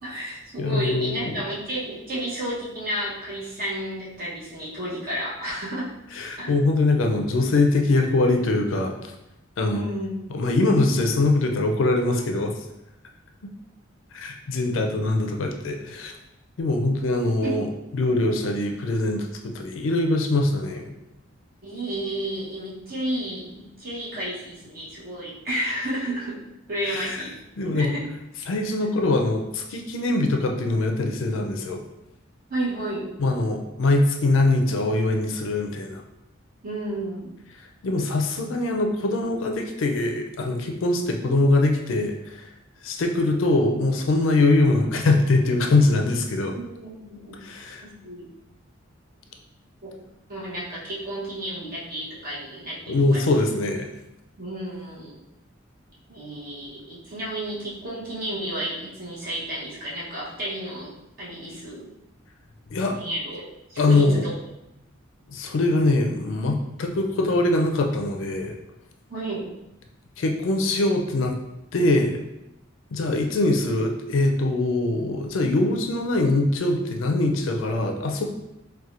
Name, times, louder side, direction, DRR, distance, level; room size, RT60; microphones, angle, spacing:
voice 1, 0.0-5.9 6.4-6.5 9.6-10.1 17.4-17.6 21.6-26.4 26.7-27.4 27.7-28.0 32.5-33.1 36.6-37.3 46.5-47.4 47.8-48.3 49.8-49.9 50.3-53.2 54.4-55.2 56.1-61.9 62.9-63.4 63.7-64.3 69.1-69.5, right 1 dB, 45° right, -6 dB, 1.0 m, -32 dB
voice 2, 0.6-1.4 6.1-9.1 9.6-9.8 10.3-12.6 13.4-13.5 14.1-16.1 16.6-17.7 17.9-20.8 26.9-27.2 27.6-27.9 28.5-31.8 33.2-36.0 37.8-42.5 42.8-46.6 47.4-47.8 52.9-53.9 62.7-63.0 63.8-64.2 65.3-68.6 70.2-71.4 71.7-72.2 72.9-78.2, left 2 dB, 70° left, 3 dB, 0.4 m, -23 dB
4.2 x 2.2 x 2.5 m, 0.88 s
head